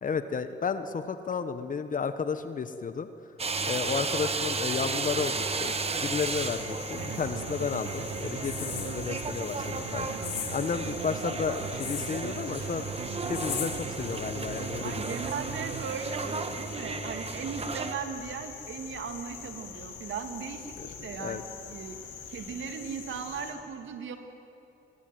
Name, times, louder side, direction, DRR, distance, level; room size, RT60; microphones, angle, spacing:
voice 1, 0.0-3.1 3.6-12.9 13.3-15.2 20.8-21.4, left 5 dB, 40° left, 10 dB, 1.3 m, -33 dB
sound 1, 3.4-17.9, right 4 dB, 30° right, 1.8 m, -34 dB
sound 2, 6.1-23.5, left 7 dB, 75° left, 4.2 m, -42 dB
sound 3, 7.0-16.3, right 13 dB, 90° right, 0.7 m, -41 dB
voice 2, 14.8-22.0 22.3-24.2, right 6 dB, 70° right, 6 dB, 2.6 m, -38 dB
23.5 x 21.5 x 9.4 m, 2.8 s
cardioid pair, 90°, 20 cm